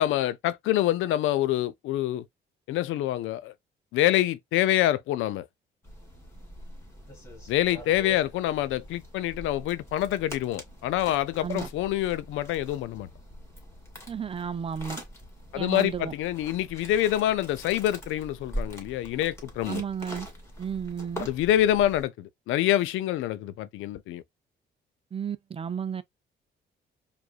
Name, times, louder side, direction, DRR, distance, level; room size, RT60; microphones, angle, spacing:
voice 1, 0.0-2.2 2.7-3.5 3.9-5.5 7.5-13.1 15.5-19.8 21.2-24.2, left 13 dB, 90° left, 0.5 m, -26 dB
sound 1, 5.8-22.1, equal, 15° left, 2.1 m, -43 dB
voice 2, 14.1-15.0 15.5-16.1 19.7-20.3 20.6-21.3 25.1-26.0, right 7 dB, 30° right, 0.5 m, -33 dB
4.8 x 2.5 x 2.4 m
cardioid pair, 90°, 20 cm